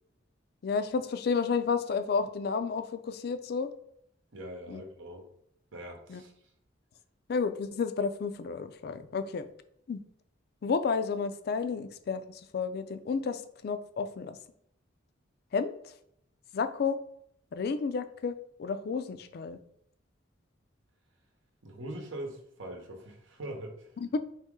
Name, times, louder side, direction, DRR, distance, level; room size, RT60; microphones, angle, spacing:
voice 1, 0.6-3.7 4.7-4.8 6.1-6.2 7.3-9.5 9.9-10.0 10.6-14.4 15.5-15.9 16.5-17.0 17.5-19.6 24.0-24.2, left 5 dB, 55° left, 11 dB, 0.3 m, -31 dB
voice 2, 4.3-5.3 5.7-6.3 21.6-23.9, right 1 dB, 85° right, 2 dB, 0.9 m, -42 dB
4.2 x 3.0 x 3.6 m, 0.72 s
head